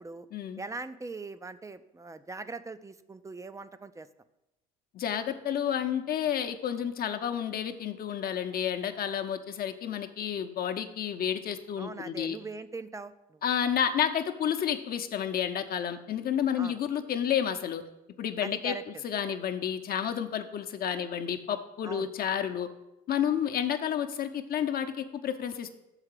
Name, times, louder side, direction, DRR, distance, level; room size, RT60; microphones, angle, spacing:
voice 1, 0.6-4.1 11.8-13.4 16.6-16.8 18.4-19.0 21.8-22.1, right 3 dB, 15° right, 13 dB, 0.4 m, -41 dB
voice 2, 4.9-12.4 13.4-17.8 18.2-18.8 19.0-22.7 23.1-25.8, left 9 dB, 50° left, 8 dB, 0.7 m, -30 dB
6.5 x 4.9 x 6.4 m, 0.92 s
supercardioid pair, 70°, 19 cm